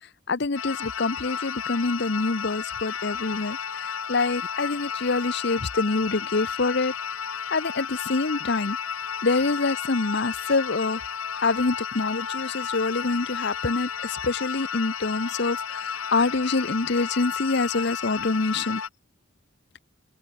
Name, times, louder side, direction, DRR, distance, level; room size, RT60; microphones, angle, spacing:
voice 1, 0.3-3.6 4.1-6.9 7.5-8.8 9.2-11.0 11.4-18.8, left 3 dB, 55° left, 0.8 m, -26 dB
sound 1, 0.6-18.9, left 7 dB, 90° left, 1.6 m, -32 dB
head